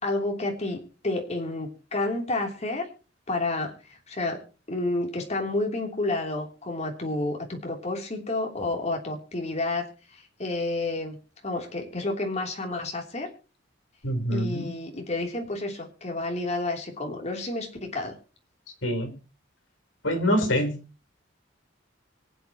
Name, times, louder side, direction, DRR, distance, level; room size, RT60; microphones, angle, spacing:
voice 1, 0.0-2.9 3.3-4.4 4.7-9.9 10.1-11.2 11.4-13.3 14.3-18.1, left 2 dB, 35° left, 2 dB, 3.1 m, -30 dB
voice 2, 14.0-14.7 18.8-19.1 20.0-20.8, equal, 85° left, 7 dB, 3.7 m, -25 dB
24.5 x 8.3 x 3.0 m, 0.34 s
head